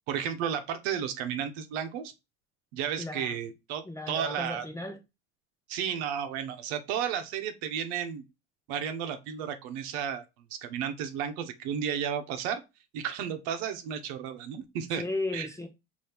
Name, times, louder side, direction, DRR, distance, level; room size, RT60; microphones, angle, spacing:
voice 1, 0.1-2.1 2.7-4.6 5.7-8.2 8.7-10.2 10.5-12.6 12.9-15.0 15.3-15.5, right 8 dB, 70° right, 0.9 m, -33 dB
voice 2, 3.0-3.4 3.8-5.0 15.0-15.7, left 2 dB, 10° left, 0.7 m, -35 dB
4.2 x 2.7 x 3.4 m
supercardioid pair, 120°, 32 cm